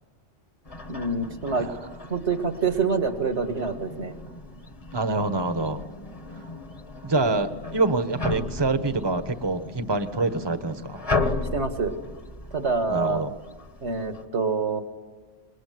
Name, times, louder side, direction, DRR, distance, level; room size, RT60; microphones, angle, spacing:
sound 1, 0.7-14.2, left 3 dB, 30° left, 1.5 m, -35 dB
voice 1, 0.9-1.7 2.1-4.1 11.5-11.9 12.5-13.2 13.8-14.8, right 4 dB, 65° right, 7 dB, 2.2 m, -26 dB
voice 2, 1.6-1.9 4.9-5.8 7.0-11.0 12.9-13.3, right 3 dB, 20° right, 9 dB, 1.2 m, -26 dB
26.0 x 22.0 x 9.4 m, 1.4 s
omnidirectional pair, 1.2 m